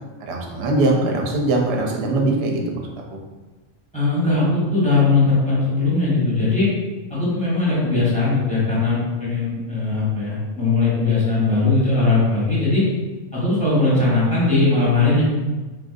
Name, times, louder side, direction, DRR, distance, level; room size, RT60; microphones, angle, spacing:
voice 1, 0.2-3.2, right 2 dB, 60° right, 0 dB, 0.7 m, -21 dB
voice 2, 3.9-6.7 7.1-12.8 13.3-15.2, left 3 dB, 5° left, -9 dB, 1.1 m, -19 dB
3.8 x 2.5 x 2.4 m, 1.2 s
omnidirectional pair, 1.3 m